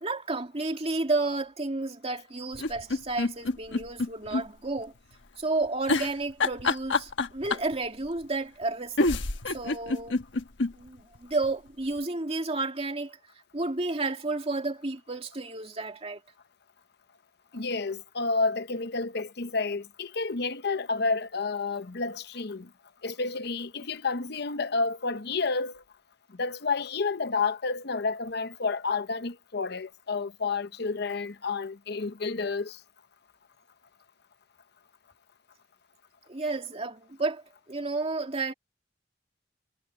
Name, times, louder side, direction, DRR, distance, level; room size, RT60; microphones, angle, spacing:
voice 1, 0.0-4.9 5.4-9.0 9.5-10.2 10.7-13.2 13.5-16.2 36.3-38.5, right 3 dB, 35° right, 2.4 m, -31 dB
sound 1, 2.5-4.4 4.8-4.9 5.9-7.7 8.6-8.7 9.0-10.7 11.1-11.2 11.4-11.5, left 3 dB, 85° left, 1.2 m, -27 dB
voice 2, 17.5-22.7 23.0-25.8 26.3-32.8, left 4 dB, 60° left, 0.9 m, -30 dB
head